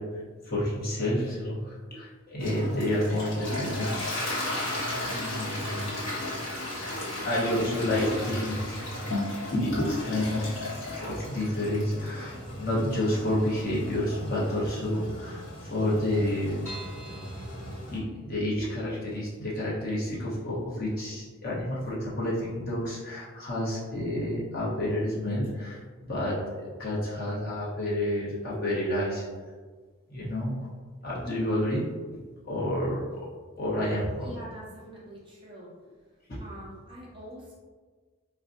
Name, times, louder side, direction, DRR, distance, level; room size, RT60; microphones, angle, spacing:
voice 1, 0.0-4.5 5.0-6.1 7.2-8.9 9.6-16.6 17.9-29.3 30.1-30.5 31.0-32.2 32.5-33.0 33.6-34.3 36.3-36.4, left 1 dB, 45° left, -7 dB, 1.0 m, -30 dB
Toilet flush, 2.4-18.0, left 1 dB, 75° left, 1.2 m, -34 dB
sound 1, 12.9-14.2 14.6-14.7 15.0-15.1 15.2-15.3 15.8-18.5 18.9-19.0 19.4-19.5, right 1 dB, 15° left, 1.1 m, -49 dB
voice 2, 34.2-35.7 36.4-37.5, right 1 dB, 25° right, -5 dB, 0.7 m, -44 dB
4.8 x 2.2 x 2.6 m, 1.5 s
head